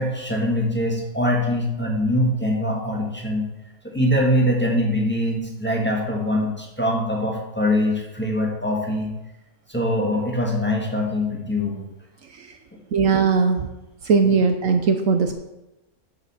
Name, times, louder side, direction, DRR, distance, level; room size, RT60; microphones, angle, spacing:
voice 1, 0.0-3.5 3.8-9.1 9.7-11.8 14.2-14.4, left 1 dB, 5° left, -1 dB, 1.7 m, -23 dB
voice 2, 12.9-13.7 14.0-15.3, right 5 dB, 65° right, 6 dB, 1.1 m, -19 dB
7.3 x 5.8 x 7.1 m, 0.96 s
omnidirectional pair, 1.6 m